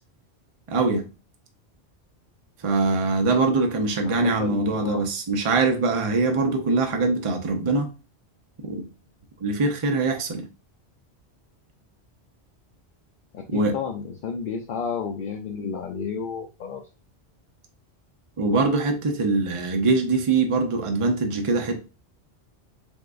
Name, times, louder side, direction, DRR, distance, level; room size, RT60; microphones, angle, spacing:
voice 1, 0.7-1.1 2.6-7.9 8.6-8.8 9.4-10.4 13.5-13.7 18.4-21.8, right 3 dB, 35° right, 0.6 m, -23 dB
voice 2, 4.1-5.1 13.3-16.8, left 6 dB, 55° left, 0.7 m, -31 dB
3.6 x 3.4 x 2.5 m
omnidirectional pair, 1.1 m